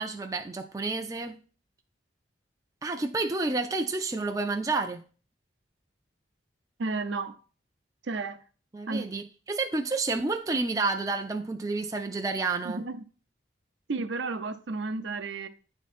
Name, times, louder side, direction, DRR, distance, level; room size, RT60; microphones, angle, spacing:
voice 1, 0.0-1.4 2.8-5.0 8.7-12.8, right 3 dB, 20° right, 0.4 m, -30 dB
voice 2, 6.8-7.4 8.0-8.4 8.9-9.0 12.6-13.0 13.9-15.5, right 3 dB, 70° right, 0.6 m, -32 dB
10.0 x 3.6 x 4.2 m
head